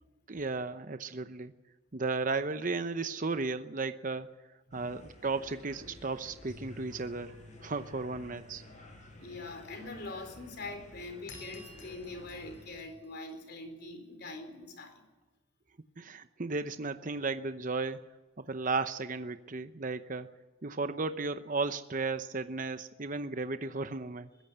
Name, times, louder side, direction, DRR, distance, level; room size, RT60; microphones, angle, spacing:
voice 1, 0.3-1.5 1.9-4.4 4.7-7.4 7.6-8.6 16.0-18.0 18.4-20.3 20.6-24.3, right 3 dB, 40° right, 10 dB, 0.8 m, -34 dB
sound 1, 4.7-12.8, left 1 dB, 40° left, 7.1 m, -53 dB
Bass guitar, 6.5-12.7, left 3 dB, 20° right, 1.9 m, -56 dB
voice 2, 9.2-15.0, left 2 dB, 55° left, 7 dB, 4.1 m, -43 dB
sound 2, 11.3-13.8, left 2 dB, 70° left, 6.4 m, -53 dB
22.5 x 16.0 x 8.0 m, 1.1 s
head